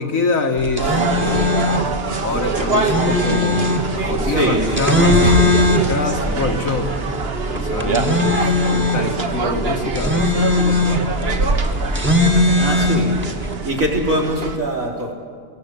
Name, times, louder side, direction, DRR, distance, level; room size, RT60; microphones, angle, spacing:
voice 1, 0.0-1.7 2.2-3.7 3.9-6.9 7.5-11.0, left 3 dB, 60° left, 4 dB, 2.1 m, -25 dB
sound 1, 0.6-13.5, left 2 dB, 10° right, 1.7 m, -20 dB
sound 2, 0.8-14.6, right 3 dB, 45° right, 1.5 m, -23 dB
voice 2, 4.2-4.7 12.6-13.1 13.6-15.1, right 1 dB, 60° right, -1 dB, 4.5 m, -22 dB
22.5 x 18.0 x 8.5 m, 2.1 s
omnidirectional pair, 1.6 m